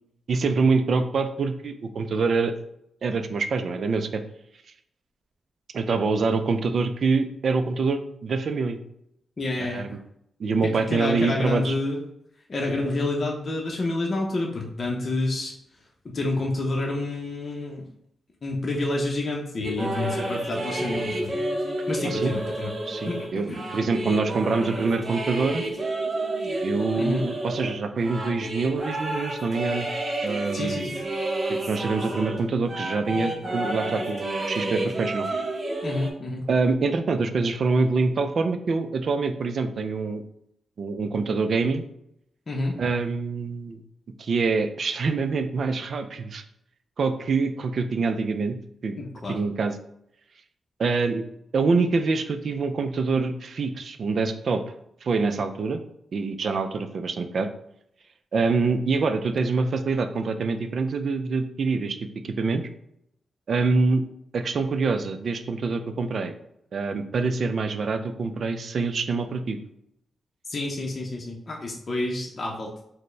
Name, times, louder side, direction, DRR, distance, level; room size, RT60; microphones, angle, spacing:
voice 1, 0.3-2.5 3.0-4.2 5.7-8.8 9.6-9.9 10.4-11.7 22.0-22.3 22.9-25.6 26.6-29.9 30.2-30.9 31.7-35.3 36.5-40.2 40.8-41.8 42.8-43.8 44.2-46.4 47.0-48.6 48.8-48.9 49.3-49.8 50.8-51.2 51.5-54.6 55.0-55.8 56.1-57.5 58.3-62.0 62.2-62.6 63.5-64.0 64.3-66.3 66.7-69.6, right 4 dB, 60° right, 9 dB, 0.3 m, -25 dB
voice 2, 9.4-10.0 10.6-12.0 12.5-15.5 16.1-17.9 18.4-21.3 21.9-22.7 23.1-23.6 27.0-27.2 30.5-31.0 35.8-36.5 42.5-42.8 49.0-49.4 70.5-72.8, left 2 dB, 40° left, -1 dB, 0.6 m, -28 dB
sound 1, 19.6-32.4 32.7-36.1, right 1 dB, 35° right, 0.7 m, -30 dB
4.1 x 2.1 x 3.2 m, 0.76 s
cardioid pair, 90°, 0 cm